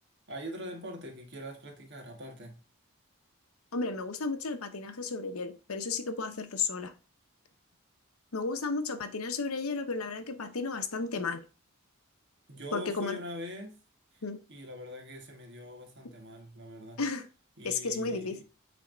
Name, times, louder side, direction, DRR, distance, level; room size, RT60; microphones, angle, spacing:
voice 1, 0.3-2.6 12.5-13.8 14.1-14.2 14.5-17.0 17.6-18.4, left 1 dB, 55° right, 1.7 m, -42 dB
voice 2, 3.7-6.9 8.3-11.4 12.7-13.2 14.2-14.4 17.0-17.3 17.6-18.4, left 4 dB, 85° left, 0.9 m, -33 dB
8.6 x 3.5 x 3.9 m
head